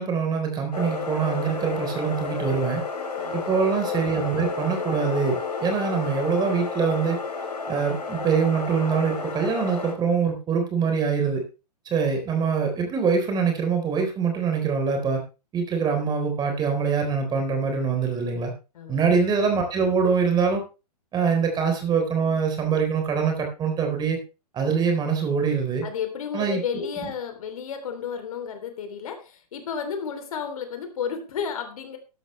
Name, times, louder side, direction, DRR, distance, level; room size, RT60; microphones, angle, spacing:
voice 1, 0.0-2.8 3.3-7.2 7.7-11.4 11.9-15.2 15.5-18.5 18.9-20.6 21.1-24.2 24.5-25.8 26.3-26.9, right 6 dB, 20° right, 4 dB, 3.9 m, -24 dB
sound 1, 0.7-9.9, left 4 dB, 80° left, 3.7 m, -31 dB
voice 2, 3.2-3.5 18.7-19.0 25.8-32.0, left 7 dB, 60° left, 7 dB, 3.2 m, -32 dB
13.0 x 12.0 x 3.3 m, 0.31 s
figure-of-eight pair, 120°, 21 cm